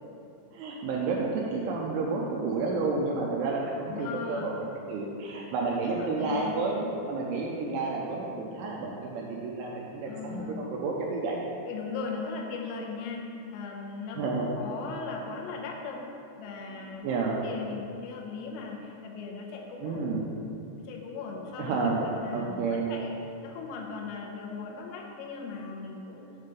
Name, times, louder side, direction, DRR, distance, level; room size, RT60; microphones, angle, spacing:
voice 1, 0.5-4.5 4.9-6.8 7.1-11.4 14.2-14.5 17.0-17.4 19.8-20.3 21.6-22.0 22.3-22.9, right 3 dB, 80° right, -2 dB, 2.8 m, -30 dB
voice 2, 3.9-4.6 5.7-6.9 10.1-10.7 11.6-16.1 16.4-17.1 17.4-20.0 20.8-23.1 23.4-26.3, left 4 dB, 85° left, 0 dB, 3.3 m, -38 dB
8.1 x 3.7 x 6.6 m, 2.6 s
omnidirectional pair, 6.0 m